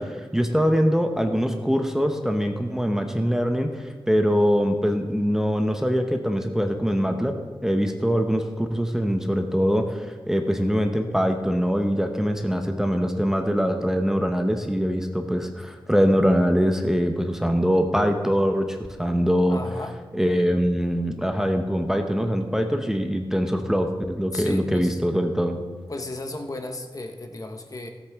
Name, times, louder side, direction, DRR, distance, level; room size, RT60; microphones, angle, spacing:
voice 1, 0.0-7.3 7.6-19.6 20.1-25.6, equal, 5° right, 4 dB, 0.8 m, -23 dB
voice 2, 19.5-20.0 24.3-25.0 25.9-27.9, left 2 dB, 40° left, 5 dB, 1.1 m, -34 dB
17.0 x 8.3 x 3.6 m, 1.4 s
wide cardioid pair, 85°, 9 cm